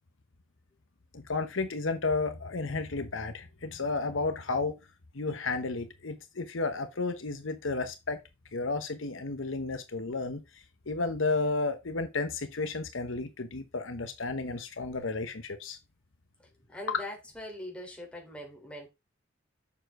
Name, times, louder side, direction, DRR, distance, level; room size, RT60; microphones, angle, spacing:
voice 1, 1.1-4.8 5.1-8.2 8.5-15.8 16.9-17.0, left 3 dB, 75° left, 1.1 m, -32 dB
voice 2, 16.7-18.9, left 1 dB, 5° left, 3.6 m, -42 dB
7.4 x 6.6 x 3.7 m
head